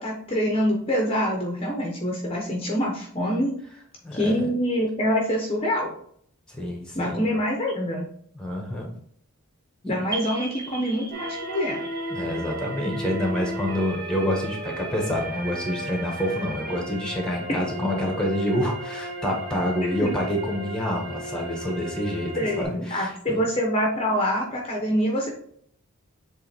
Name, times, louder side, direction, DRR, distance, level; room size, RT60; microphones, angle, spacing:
voice 1, 0.0-3.5 4.1-5.9 6.9-8.1 9.9-11.8 17.5-17.6 20.0-20.1 22.4-25.3, equal, 25° left, -1 dB, 1.0 m, -25 dB
voice 2, 4.0-4.5 6.5-7.3 8.3-8.9 9.8-10.0 12.1-23.4, equal, 5° left, 0 dB, 1.3 m, -27 dB
sound 1, 10.1-14.6, right 4 dB, 15° right, 0.7 m, -40 dB
sound 2, 11.1-22.6, right 1 dB, 45° right, 1.8 m, -35 dB
7.8 x 3.4 x 3.5 m, 0.63 s
head